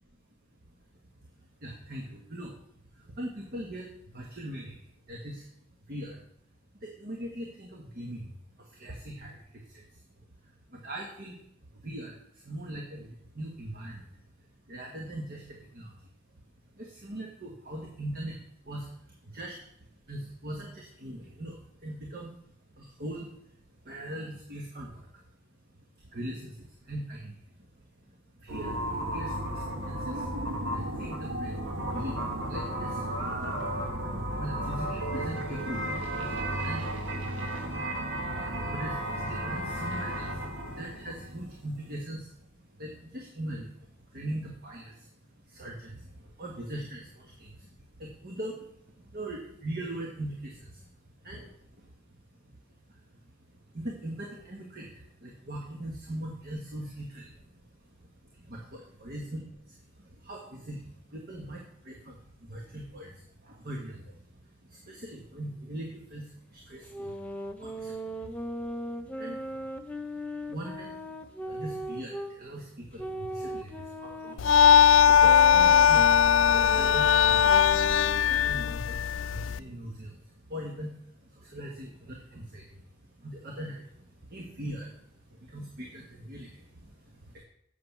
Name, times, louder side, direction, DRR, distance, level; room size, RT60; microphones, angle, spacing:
voice 1, 1.6-2.6 2.9-5.5 5.9-6.2 6.7-10.0 10.7-11.4 11.7-14.1 14.4-16.0 16.3-16.4 16.7-18.4 18.6-19.6 20.0-22.3 22.7-23.3 23.8-25.1 26.0-27.3 27.7-33.3 33.6-34.0 34.3-36.9 38.0-50.9 51.2-51.9 52.3-52.6 52.9-57.9 58.5-82.9 83.2-87.4, right 1 dB, 50° right, 0 dB, 1.3 m, -41 dB
sound 1, 28.5-42.0, right 1 dB, 80° right, 1.6 m, -34 dB
sound 2, 66.9-72.3 73.0-78.3, equal, 5° left, 0.6 m, -38 dB
sound 3, 74.4-79.6, left 8 dB, 80° left, 0.4 m, -20 dB
7.8 x 6.8 x 5.9 m, 0.76 s
head